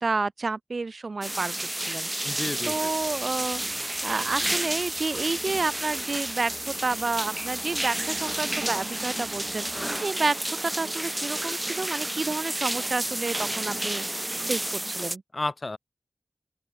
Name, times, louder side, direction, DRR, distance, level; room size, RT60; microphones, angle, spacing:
voice 1, 0.0-3.6 4.0-15.2, right 3 dB, 65° right, 1.9 m, -30 dB
sound 1, 1.2-15.2, right 1 dB, 20° right, 1.8 m, -31 dB
voice 2, 2.2-2.9 15.3-15.8, left 2 dB, 45° left, 0.8 m, -32 dB
sound 2, 3.0-10.0, left 4 dB, 75° left, 6.8 m, -56 dB
open air
wide cardioid pair, 60°, 0 cm